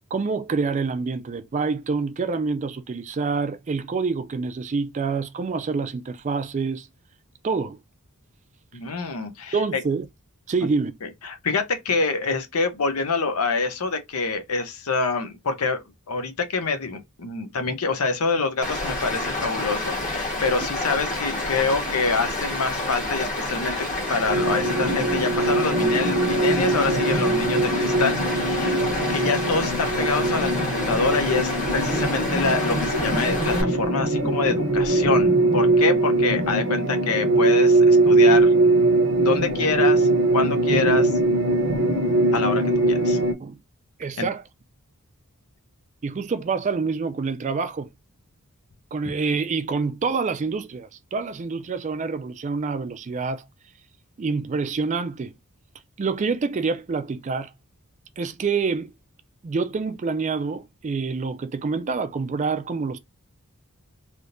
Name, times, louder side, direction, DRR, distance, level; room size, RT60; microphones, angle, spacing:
voice 1, 0.1-6.9 7.4-7.8 9.5-10.1 10.5-10.9 43.4-43.6 44.0-44.4 46.0-47.9 48.9-53.4 54.2-55.3 56.0-57.5 58.2-58.9 59.4-63.0, right 4 dB, 30° right, 0.3 m, -27 dB
voice 2, 8.7-9.8 11.2-23.8 24.1-28.8 29.1-38.5 39.2-41.2 42.3-42.6 42.9-43.2 44.2-44.3, left 4 dB, 80° left, 0.7 m, -26 dB
Stream, 18.6-33.6, left 2 dB, 35° left, 1.3 m, -29 dB
sound 1, 24.3-43.3, right 2 dB, 65° right, 0.7 m, -21 dB
3.4 x 2.8 x 2.5 m
head